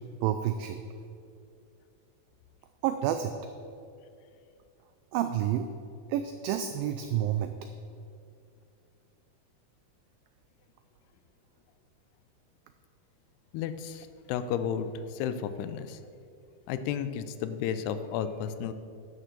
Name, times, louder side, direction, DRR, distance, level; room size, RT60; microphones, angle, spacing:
voice 1, 0.2-0.8 2.8-3.3 5.1-5.7 6.1-7.5, right 11 dB, 85° right, 8 dB, 2.0 m, -29 dB
voice 2, 13.5-16.0 16.7-18.7, left 8 dB, 90° left, 11 dB, 2.7 m, -33 dB
11.5 x 6.5 x 6.7 m, 2.4 s
omnidirectional pair, 4.6 m